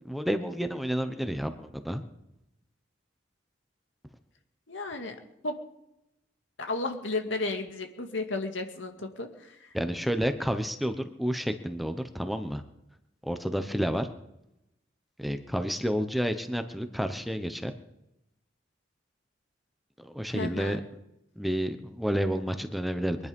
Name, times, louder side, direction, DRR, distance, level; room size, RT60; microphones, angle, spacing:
voice 1, 0.0-2.0 9.7-12.6 13.2-14.1 15.2-17.7 20.0-20.8 21.4-23.2, equal, ahead, 8 dB, 1.0 m, -30 dB
voice 2, 4.7-5.2 5.4-5.5 6.6-9.6 20.3-20.8, left 2 dB, 85° left, 4 dB, 2.3 m, -33 dB
23.5 x 11.0 x 5.4 m, 0.87 s
head